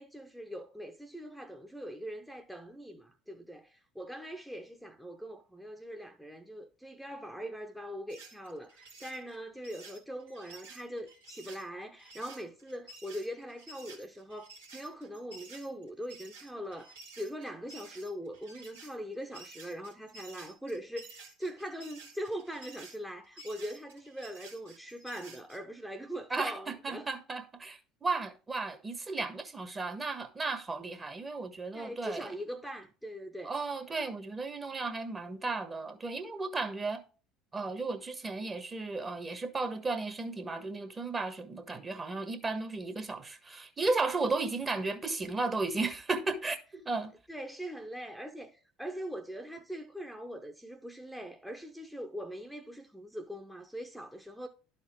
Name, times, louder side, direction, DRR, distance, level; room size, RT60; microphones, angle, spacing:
voice 1, 0.0-27.1 31.7-33.5 47.3-54.5, equal, ahead, 0.9 m, -42 dB
sound 1, 8.1-25.6, right 3 dB, 85° right, 2.2 m, -52 dB
voice 2, 26.3-32.3 33.4-37.0 37.5-47.1, right 3 dB, 25° right, 1.4 m, -34 dB
11.5 x 4.3 x 3.6 m
hypercardioid pair, 65°, 0 cm